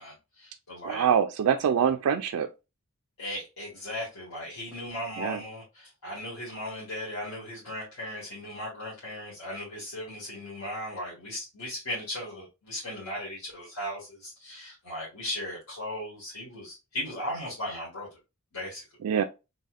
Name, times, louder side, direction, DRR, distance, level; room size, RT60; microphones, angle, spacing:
voice 1, 0.0-1.1 3.2-18.2 18.5-18.8, left 1 dB, 85° left, 1.9 m, -37 dB
voice 2, 0.8-2.5 5.2-5.4 19.0-19.2, right 8 dB, 75° right, 0.3 m, -24 dB
4.0 x 3.3 x 2.4 m
head